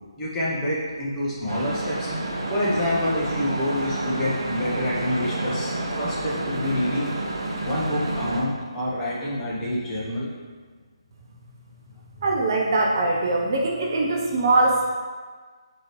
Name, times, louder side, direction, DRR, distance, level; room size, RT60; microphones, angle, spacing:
voice 1, 0.2-2.1 2.5-5.7 6.0-7.2 7.6-10.3, left 1 dB, 15° left, -7 dB, 0.9 m, -27 dB
sound 1, 1.5-8.4, right 2 dB, 60° right, 0.8 m, -29 dB
voice 2, 12.2-14.9, right 2 dB, 40° right, 0 dB, 0.4 m, -22 dB
4.6 x 3.0 x 3.1 m, 1.5 s
figure-of-eight pair, 145°, 3 cm